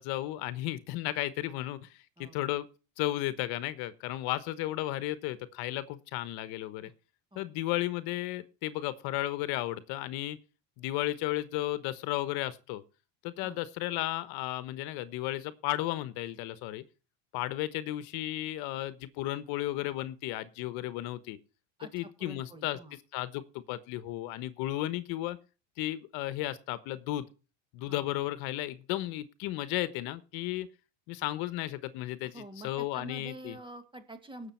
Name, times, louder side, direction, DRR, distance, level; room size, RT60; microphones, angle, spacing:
voice 1, 0.0-1.9 2.3-2.7 3.0-6.9 7.4-10.4 10.8-12.8 13.2-16.8 17.3-21.4 21.9-22.8 23.1-25.4 25.8-27.3 27.7-30.7 31.1-33.6, left 15 dB, 65° left, 14 dB, 1.2 m, -34 dB
voice 2, 21.8-23.0 27.9-28.1 32.2-34.5, right 1 dB, 10° right, 8 dB, 2.2 m, -47 dB
18.0 x 7.0 x 4.4 m, 0.34 s
supercardioid pair, 125°, 41 cm